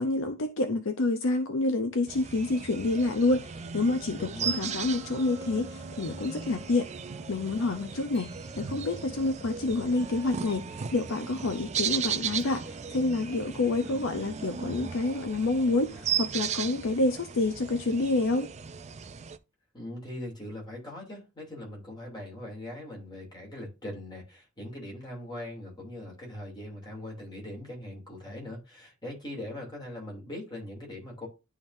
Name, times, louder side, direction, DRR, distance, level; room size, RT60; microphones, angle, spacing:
voice 1, 0.0-6.9 7.3-18.5, left 2 dB, 65° left, 0.6 m, -28 dB
sound 1, 2.1-19.4, right 7 dB, 30° right, 0.4 m, -36 dB
voice 2, 4.1-4.6 19.7-31.3, left 1 dB, 20° left, 2.7 m, -41 dB
sound 2, 4.4-15.9, right 3 dB, 60° right, 1.4 m, -51 dB
sound 3, 5.3-18.2, right 2 dB, 15° right, 1.9 m, -51 dB
11.0 x 3.6 x 2.6 m
head